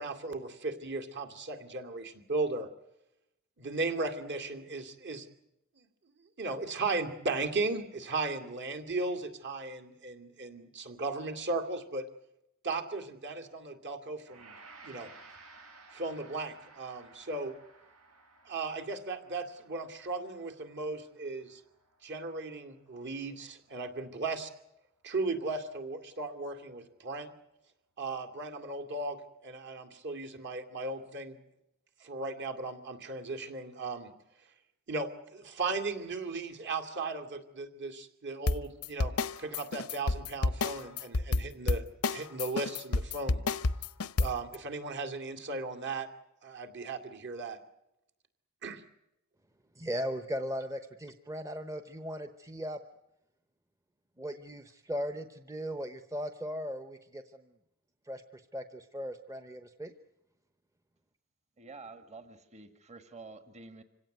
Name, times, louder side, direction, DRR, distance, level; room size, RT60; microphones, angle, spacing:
voice 1, 0.0-2.7 3.6-5.3 5.8-5.9 6.4-12.1 12.6-14.5 14.8-15.1 15.9-17.5 18.4-21.6 22.0-24.5 25.0-27.3 28.0-31.4 32.0-34.1 34.9-41.8 42.1-43.4 44.2-46.1 46.4-47.6 48.6-48.8, right 3 dB, 55° right, 6 dB, 2.5 m, -36 dB
Gong, 14.3-23.5, right 3 dB, 85° right, 7.8 m, -56 dB
sound 1, 38.5-44.5, left 3 dB, 80° left, 0.8 m, -29 dB
voice 2, 49.8-52.8 54.2-57.5 58.1-59.9, equal, 15° right, 9 dB, 0.9 m, -38 dB
voice 3, 61.6-63.8, right 3 dB, 30° right, 8 dB, 1.6 m, -49 dB
26.0 x 17.0 x 9.4 m, 0.87 s
head